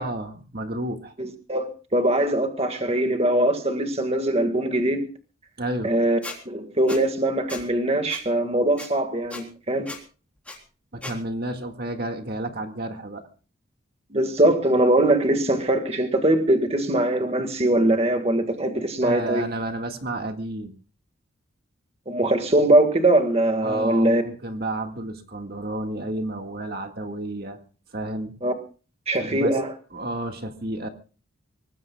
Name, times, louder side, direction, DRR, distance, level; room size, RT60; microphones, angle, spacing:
voice 1, 0.0-1.1 5.6-5.9 10.9-13.3 19.0-20.7 23.6-27.6 27.9-28.3 29.2-29.5 29.9-30.9, right 1 dB, 45° right, 1.8 m, -31 dB
voice 2, 1.2-5.0 5.8-6.2 6.5-9.9 14.1-19.4 22.1-24.2 28.4-28.5 29.1-29.7, right 1 dB, 30° right, 1.7 m, -21 dB
Squeak, 6.2-6.4 6.9-7.0 7.5-7.6 8.1-8.2 8.8-8.9 9.3-9.4 9.9-10.0 10.4-10.6 11.0-11.1, left 2 dB, 5° left, 3.6 m, -36 dB
24.5 x 19.5 x 2.3 m
head